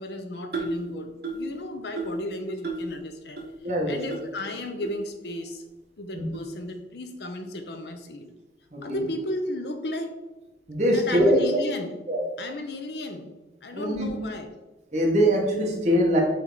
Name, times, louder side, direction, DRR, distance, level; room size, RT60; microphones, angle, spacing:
voice 1, 0.0-3.4 3.9-5.6 6.0-8.3 8.8-10.2 10.9-11.9 12.4-13.3 13.6-14.5, left 1 dB, 70° left, 6 dB, 0.7 m, -34 dB
sound 1, 0.5-0.8 1.2-1.5 2.0-2.2 2.6-2.9 3.4-3.5 4.1-4.2 4.8-4.9 5.6-5.7 6.3-6.5, right 2 dB, 60° right, 1.2 m, -32 dB
voice 2, 3.6-3.9 6.1-6.2 8.7-9.0 10.7-11.4 12.1-12.2 13.7-14.1 14.9-16.2, equal, 40° right, -1 dB, 1.3 m, -22 dB
7.6 x 3.4 x 3.9 m, 1.1 s
head